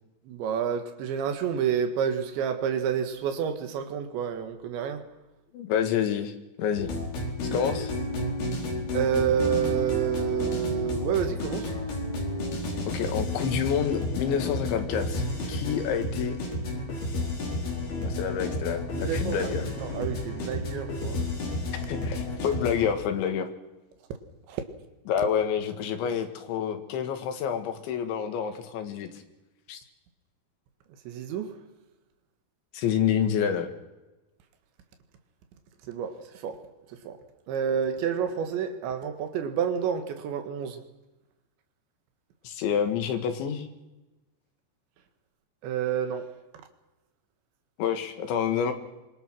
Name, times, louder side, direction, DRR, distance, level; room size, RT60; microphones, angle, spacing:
voice 1, 0.3-5.1 8.9-11.7 18.9-21.3 24.5-24.6 31.1-31.6 35.8-37.2 37.5-40.8 45.6-46.3, right 8 dB, 75° right, 3.9 m, -29 dB
voice 2, 5.5-6.3 6.6-6.9 7.5-7.9 12.9-16.4 18.0-19.7 21.8-23.5 25.1-29.1 29.7-29.8 32.7-33.7 42.4-43.7 47.8-48.7, left 8 dB, 80° left, 4.2 m, -28 dB
sound 1, 6.8-22.9, left 2 dB, 60° left, 6.6 m, -31 dB
25.5 x 24.0 x 6.3 m
omnidirectional pair, 5.2 m